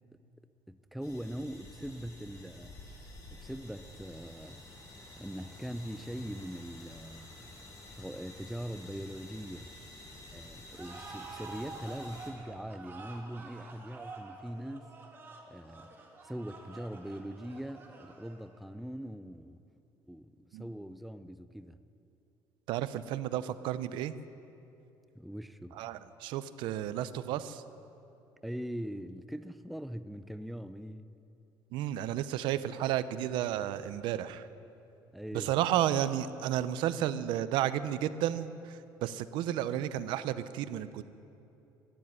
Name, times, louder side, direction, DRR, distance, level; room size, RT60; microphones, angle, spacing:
voice 1, 0.7-2.7 3.3-4.6 5.2-7.3 7.9-9.7 10.3-14.9 15.5-15.9 16.2-19.6 20.1-21.8 25.2-25.8 28.4-31.1 35.1-35.5, equal, ahead, 11 dB, 0.4 m, -41 dB
sound 1, 1.0-12.3, left 2 dB, 45° left, 3.8 m, -50 dB
sound 2, 10.8-18.6, right 3 dB, 25° right, 1.9 m, -48 dB
voice 2, 22.7-24.2 25.7-27.6 31.7-34.5 35.3-41.0, right 11 dB, 80° right, 14 dB, 0.6 m, -32 dB
14.0 x 10.0 x 9.5 m, 2.8 s
cardioid pair, 140°, 8 cm